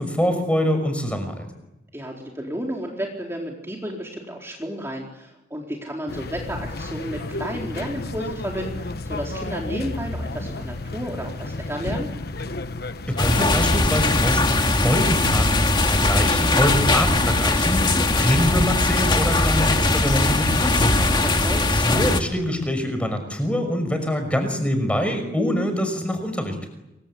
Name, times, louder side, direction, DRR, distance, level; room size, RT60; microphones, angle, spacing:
voice 1, 0.0-1.5 13.1-17.8 18.1-21.3 21.7-26.7, equal, 5° left, 7 dB, 5.8 m, -24 dB
voice 2, 1.9-12.1 21.2-21.7, equal, 15° right, -1 dB, 4.2 m, -32 dB
sound 1, 6.1-14.5, left 2 dB, 55° left, 1.3 m, -32 dB
sound 2, 13.2-22.2, left 2 dB, 25° left, 2.2 m, -20 dB
28.5 x 24.5 x 8.5 m, 0.94 s
head